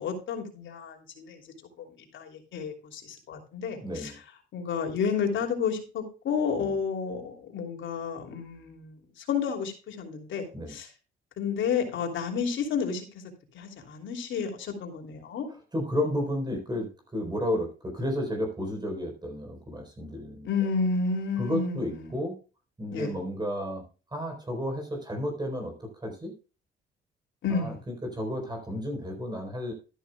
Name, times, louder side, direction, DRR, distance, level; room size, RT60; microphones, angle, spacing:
voice 1, 0.0-1.4 1.8-1.9 2.1-4.1 4.5-10.9 11.4-13.2 13.5-15.5 20.4-22.2 22.9-23.2 27.4-27.8, left 5 dB, 75° left, 3 dB, 3.1 m, -31 dB
voice 2, 3.8-4.2 10.5-10.8 15.7-20.5 21.4-22.4 22.8-23.8 24.1-26.3 27.5-29.7, left 1 dB, 20° right, 2 dB, 4.2 m, -32 dB
13.0 x 11.0 x 2.3 m, 0.33 s
cardioid pair, 90°, 20 cm